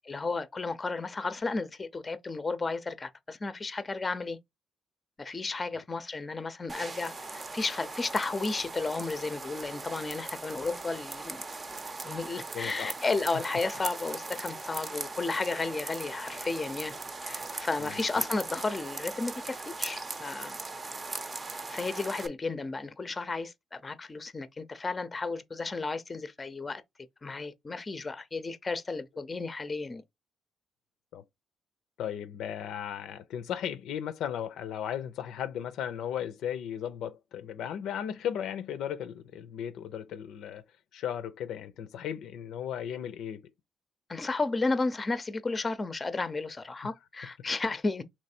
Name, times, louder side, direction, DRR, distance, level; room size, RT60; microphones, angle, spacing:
voice 1, 0.1-4.4 5.2-11.4 12.0-16.9 17.2-20.6 21.7-26.8 27.2-30.0 44.1-48.0, left 3 dB, 30° left, 0.6 m, -33 dB
sound 1, 6.7-22.3, right 3 dB, 30° right, 0.6 m, -39 dB
voice 2, 12.5-12.9 17.8-18.2 31.1-31.2 32.0-40.6 40.9-43.4, left 9 dB, 80° left, 0.5 m, -36 dB
3.2 x 3.1 x 4.3 m
cardioid pair, 90°, 0 cm